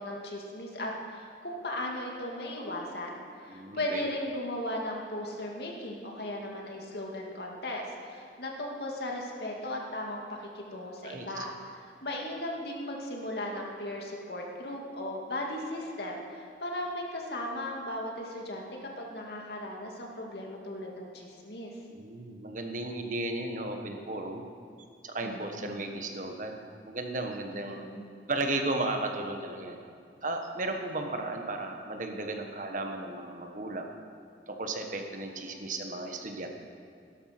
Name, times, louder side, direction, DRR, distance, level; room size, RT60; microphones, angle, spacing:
voice 1, 0.0-3.1 3.4-21.7 25.2-25.8 27.5-28.2, left 1 dB, 65° left, -1 dB, 2.4 m, -37 dB
voice 2, 3.5-4.0 11.0-11.5 21.9-24.4 25.0-26.6 26.8-27.8 28.3-29.8 30.2-33.9 34.5-36.5, right 2 dB, 45° right, 4 dB, 1.4 m, -34 dB
16.0 x 12.5 x 6.1 m, 2.4 s
head